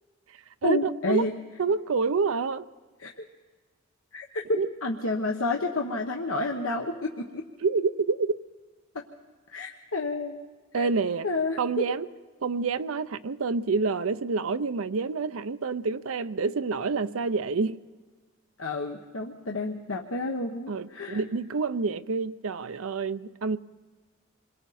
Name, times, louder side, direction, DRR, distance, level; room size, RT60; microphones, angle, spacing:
voice 1, 0.6-1.3 3.0-3.2 4.1-4.3 4.8-7.4 8.9-9.0 9.5-10.4 10.7-10.9 11.2-11.8 18.6-21.2, left 2 dB, 85° left, 1.2 m, -30 dB
voice 2, 1.6-2.7 4.5-4.7 7.6-8.3 10.7-11.3 11.6-12.1 12.4-17.8 20.7-23.6, right 4 dB, 85° right, 0.6 m, -27 dB
27.5 x 22.5 x 4.2 m
head